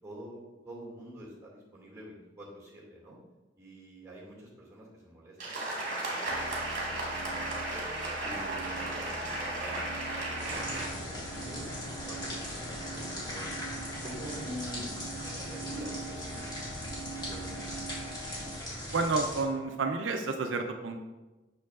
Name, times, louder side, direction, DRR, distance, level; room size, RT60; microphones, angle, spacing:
voice 1, 0.0-3.2 3.6-7.6 8.2-13.5 14.0-17.8, equal, 15° right, -4 dB, 2.1 m, -47 dB
sound 1, 5.4-10.9, right 2 dB, 45° right, 1.6 m, -35 dB
sound 2, 6.3-18.6, right 2 dB, 80° left, 1.0 m, -44 dB
sound 3, 10.4-19.4, equal, 25° left, 1.8 m, -39 dB
voice 2, 18.9-21.0, right 3 dB, 80° right, 4 dB, 0.5 m, -30 dB
6.7 x 6.3 x 2.4 m, 1.1 s
head